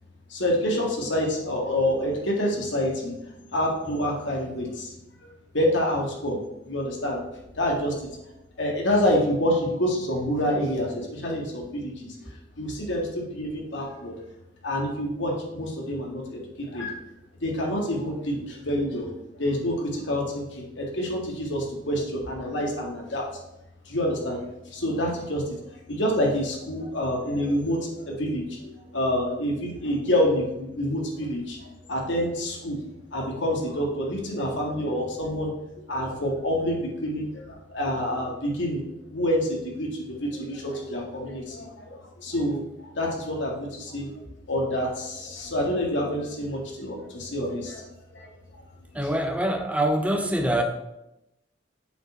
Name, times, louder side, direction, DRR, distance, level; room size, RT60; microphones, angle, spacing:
voice 1, 0.3-4.9 5.2-5.3 5.5-6.4 6.6-7.2 7.6-8.1 8.6-14.2 14.6-17.0 17.4-19.1 19.4-23.2 23.9-24.4 24.7-25.6 25.9-32.8 33.1-35.5 35.9-47.9 48.1-48.6 49.0-49.1, equal, 80° left, -1 dB, 1.9 m, -27 dB
voice 2, 48.9-50.6, right 1 dB, 5° right, 4 dB, 0.7 m, -24 dB
8.0 x 5.1 x 4.4 m, 0.88 s
head